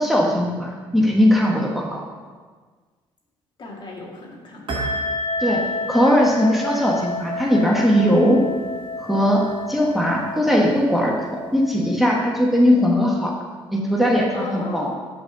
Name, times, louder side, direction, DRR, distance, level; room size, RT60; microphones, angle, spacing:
voice 1, 0.0-2.0 5.4-8.5 9.0-11.2 11.5-13.3 13.7-14.9, equal, ahead, -2 dB, 1.3 m, -19 dB
voice 2, 3.6-5.0 14.3-14.9, left 3 dB, 45° left, -2 dB, 2.1 m, -35 dB
sound 1, 4.7-12.8, left 2 dB, 50° right, 1.5 m, -30 dB
7.9 x 4.2 x 6.5 m, 1.5 s
supercardioid pair, 70°, 11 cm